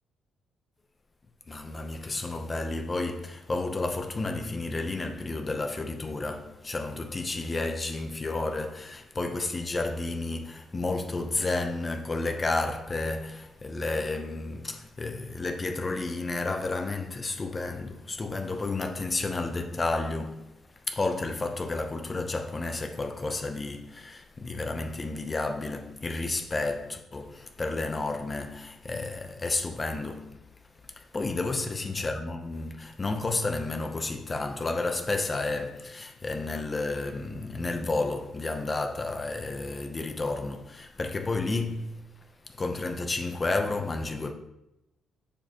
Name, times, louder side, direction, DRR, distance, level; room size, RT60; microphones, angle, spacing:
voice 1, 1.5-20.5 20.9-30.4 31.0-42.1 42.6-44.3, left 3 dB, 25° left, 0.6 m, -31 dB
6.6 x 5.2 x 2.9 m
cardioid pair, 90°, 0 cm